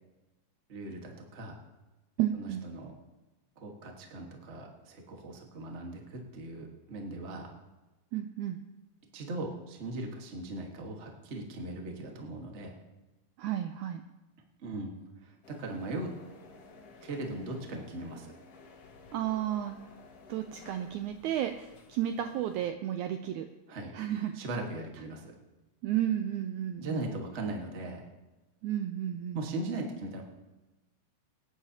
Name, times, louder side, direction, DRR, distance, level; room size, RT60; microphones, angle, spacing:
voice 1, 0.7-1.6 2.4-2.9 3.6-7.6 9.1-12.7 14.6-14.9 15.2-16.2 17.0-18.3 23.7-23.9 24.3-25.4 26.8-28.0 29.3-30.2, right 2 dB, 55° right, 1 dB, 0.7 m, -39 dB
voice 2, 2.2-2.6 8.1-8.6 13.4-14.0 19.1-19.8 20.3-23.5 23.9-24.4 25.8-27.2 28.6-29.6, right 11 dB, 85° right, 7 dB, 1.7 m, -32 dB
sound 1, 15.4-22.7, left 4 dB, 60° left, 2.0 m, -54 dB
25.0 x 9.8 x 2.9 m, 1.1 s
omnidirectional pair, 4.0 m